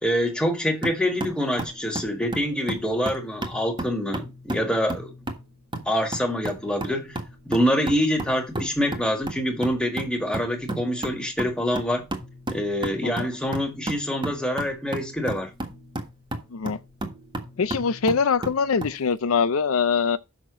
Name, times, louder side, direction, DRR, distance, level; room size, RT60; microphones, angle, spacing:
voice 1, 0.0-5.1 5.8-7.2 7.5-12.0 12.5-15.5, equal, 5° left, 1.7 m, -25 dB
sound 1, 0.8-19.0, right 1 dB, 20° right, 1.5 m, -34 dB
voice 2, 17.6-20.2, left 5 dB, 70° left, 0.5 m, -23 dB
6.5 x 6.0 x 6.1 m
head